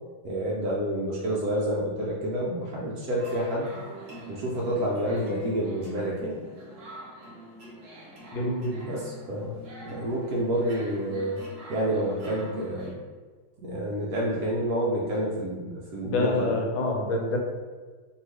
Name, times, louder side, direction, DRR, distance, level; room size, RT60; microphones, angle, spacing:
voice 1, 0.2-3.7 4.3-6.4 8.8-11.4 11.7-13.0 13.6-16.6, right 1 dB, 85° right, -4 dB, 0.8 m, -29 dB
sound 1, 3.2-12.9, right 2 dB, 55° right, 0.9 m, -44 dB
voice 2, 8.3-8.8 16.0-17.4, left 2 dB, 80° left, 1 dB, 1.3 m, -27 dB
2.7 x 2.7 x 3.1 m, 1.4 s
omnidirectional pair, 2.1 m